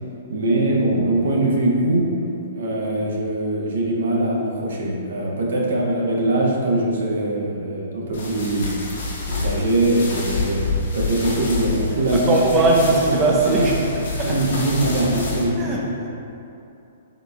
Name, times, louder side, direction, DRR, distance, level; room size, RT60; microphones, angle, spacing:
voice 1, 0.3-2.0 2.5-8.7 9.3-10.6 10.9-12.8 13.0-13.9 14.2-15.9, right 1 dB, 70° right, -3 dB, 0.7 m, -22 dB
sound 1, 8.1-15.5, left 3 dB, 70° left, 0.9 m, -28 dB
voice 2, 12.1-13.7 14.2-14.3 15.6-15.8, right 3 dB, 25° right, -3 dB, 0.3 m, -19 dB
3.7 x 3.4 x 2.2 m, 2.7 s
hypercardioid pair, 120°, 0 cm